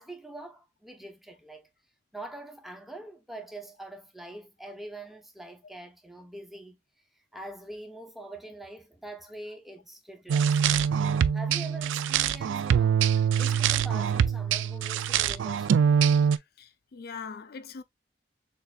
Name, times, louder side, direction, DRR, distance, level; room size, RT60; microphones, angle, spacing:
voice 1, 0.0-1.7 2.1-6.8 7.3-10.6 11.3-15.8, right 1 dB, ahead, 0.8 m, -44 dB
sound 1, 10.3-16.4, right 7 dB, 80° right, 0.3 m, -24 dB
voice 2, 16.3-17.8, left 5 dB, 55° left, 0.4 m, -42 dB
6.5 x 2.6 x 2.3 m
head